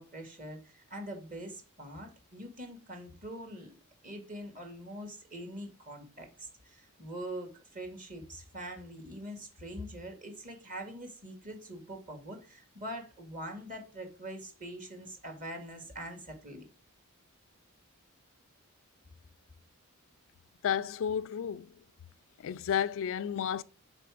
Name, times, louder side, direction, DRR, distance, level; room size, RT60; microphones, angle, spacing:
voice 1, 0.0-16.6, right 1 dB, 40° right, 1.8 m, -44 dB
voice 2, 20.6-21.7 22.4-23.6, left 8 dB, 60° left, 0.3 m, -32 dB
6.8 x 4.1 x 4.8 m
head